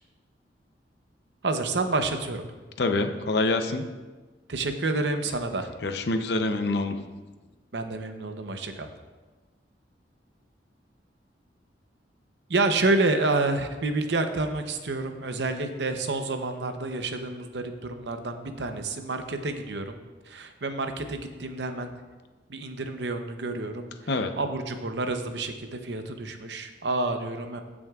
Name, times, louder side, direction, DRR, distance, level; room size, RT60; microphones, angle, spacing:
voice 1, 1.4-2.4 4.5-5.7 7.7-8.9 12.5-20.0 20.2-21.9 22.5-24.1 24.4-27.6, right 2 dB, 75° right, 7 dB, 0.8 m, -29 dB
voice 2, 2.8-3.8 5.8-7.0 24.1-24.3, left 2 dB, 65° left, 7 dB, 0.7 m, -26 dB
16.0 x 6.2 x 2.4 m, 1.3 s
head